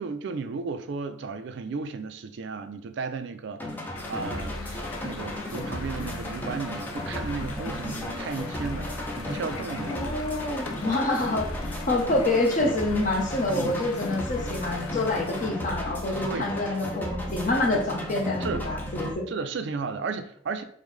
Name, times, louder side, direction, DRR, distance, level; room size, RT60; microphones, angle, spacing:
voice 1, 0.0-3.8 4.1-8.9 9.2-10.0 13.5-13.7 16.2-16.6 18.4-18.7 19.3-20.6, right 4 dB, 55° right, 0.3 m, -34 dB
sound 1, 3.6-19.1, left 1 dB, 10° left, 0.4 m, -34 dB
sound 2, 4.0-15.5, left 4 dB, 80° left, 0.4 m, -42 dB
voice 2, 9.9-19.3, left 2 dB, 40° left, 0.8 m, -27 dB
5.3 x 2.0 x 3.2 m
head